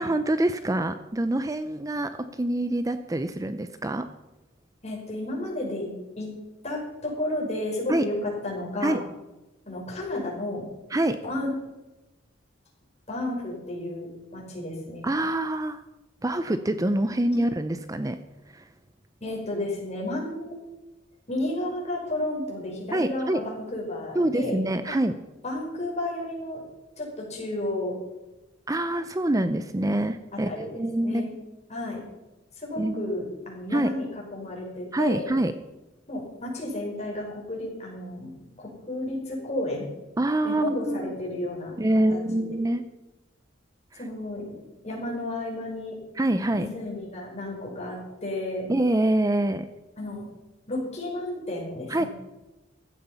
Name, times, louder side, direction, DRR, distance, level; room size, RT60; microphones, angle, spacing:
voice 1, 0.0-4.1 7.9-8.0 8.8-9.0 10.9-11.2 15.0-15.8 16.2-18.2 18.5-18.7 22.9-23.4 24.1-25.2 28.7-31.3 32.8-33.1 33.7-33.9 34.9-35.5 40.2-41.1 41.8-42.8 43.9-44.0 46.2-46.7 48.7-49.7 51.9-52.1, right 1 dB, 20° right, 10 dB, 0.6 m, -25 dB
voice 2, 4.8-5.9 6.2-6.3 6.6-9.0 9.7-10.6 11.2-11.5 13.1-15.1 19.2-20.5 21.3-24.6 24.9-25.0 25.4-26.6 27.0-28.0 30.4-31.3 31.7-32.0 32.6-35.3 36.1-38.3 38.6-39.9 40.4-41.7 42.1-42.2 44.0-46.0 46.5-48.7 50.0-50.2 50.7-52.1, left 1 dB, 35° left, -1 dB, 5.7 m, -32 dB
16.0 x 12.5 x 5.7 m, 1.0 s
head